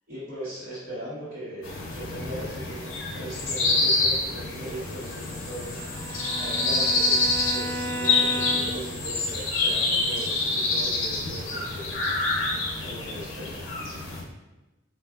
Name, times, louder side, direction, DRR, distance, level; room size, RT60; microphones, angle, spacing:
voice 1, 0.1-5.8 6.4-12.0 12.8-13.6, equal, 45° right, -12 dB, 1.0 m, -38 dB
sound 1, 1.6-14.2, left 3 dB, 80° left, 0.7 m, -27 dB
sound 2, 4.4-10.9, left 2 dB, 10° left, 0.5 m, -44 dB
Bowed string instrument, 5.8-8.9, equal, 75° right, 0.4 m, -34 dB
4.3 x 2.4 x 2.4 m, 1.1 s
head